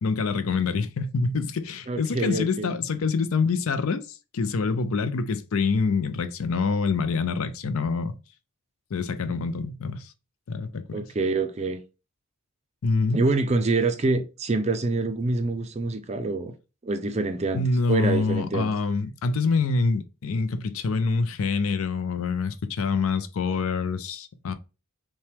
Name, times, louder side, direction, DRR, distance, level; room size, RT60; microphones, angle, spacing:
voice 1, 0.0-8.2 8.9-10.1 10.5-11.1 12.8-13.2 17.5-24.5, left 4 dB, 70° left, 0.5 m, -26 dB
voice 2, 1.9-2.7 10.9-11.8 13.1-16.5 16.8-17.6 17.9-18.7, right 3 dB, 30° right, 0.4 m, -26 dB
5.7 x 2.2 x 3.3 m
head